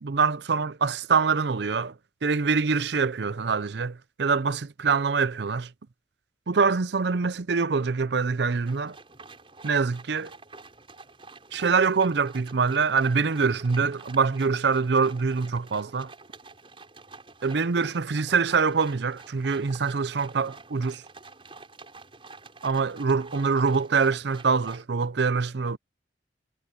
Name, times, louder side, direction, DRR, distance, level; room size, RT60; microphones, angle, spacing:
voice 1, 0.0-1.9 2.2-5.7 6.5-9.0 9.6-10.3 11.5-16.1 17.4-21.0 22.6-25.8, right 5 dB, 65° right, 0.6 m, -24 dB
sound 1, 8.7-24.8, right 3 dB, 30° right, 6.5 m, -48 dB
head